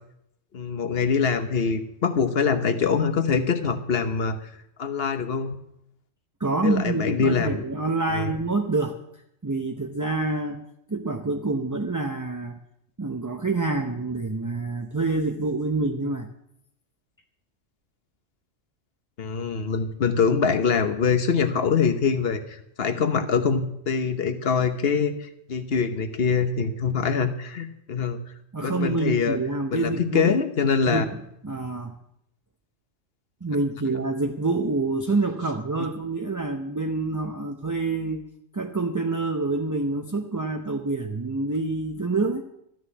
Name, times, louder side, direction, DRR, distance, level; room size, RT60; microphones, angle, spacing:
voice 1, 0.5-4.4 4.8-5.6 6.6-7.6 8.1-8.3 19.2-28.2 28.6-29.4 29.7-31.0, left 5 dB, 55° left, 9 dB, 1.2 m, -24 dB
voice 2, 6.4-8.9 9.4-10.6 10.9-12.6 13.0-16.3 28.5-30.3 30.9-32.0 33.4-38.2 38.5-42.4, right 3 dB, 20° right, 4 dB, 0.5 m, -27 dB
13.0 x 6.3 x 9.5 m, 0.78 s
omnidirectional pair, 1.3 m